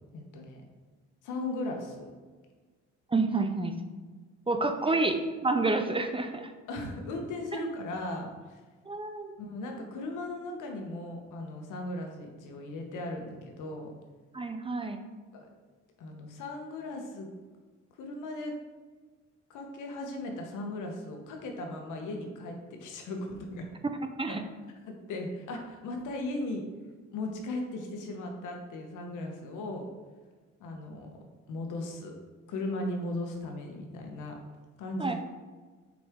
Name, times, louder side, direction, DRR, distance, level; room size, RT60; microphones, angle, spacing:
voice 1, 0.1-0.6 1.2-2.1 4.9-5.0 6.7-8.6 9.4-13.9 15.3-15.5 16.0-17.3 18.0-18.5 19.5-23.7 24.9-26.6 27.1-29.9 30.6-31.1 31.5-32.1 32.5-34.3 34.8-35.1, left 2 dB, 85° left, 2 dB, 1.2 m, -37 dB
voice 2, 3.1-3.8 4.5-6.5 7.6-7.7 8.9-9.3 14.3-15.0 24.2-24.4 35.0-35.1, right 3 dB, 20° right, 6 dB, 0.5 m, -29 dB
6.2 x 5.0 x 3.7 m, 1.4 s
cardioid pair, 90°, 30 cm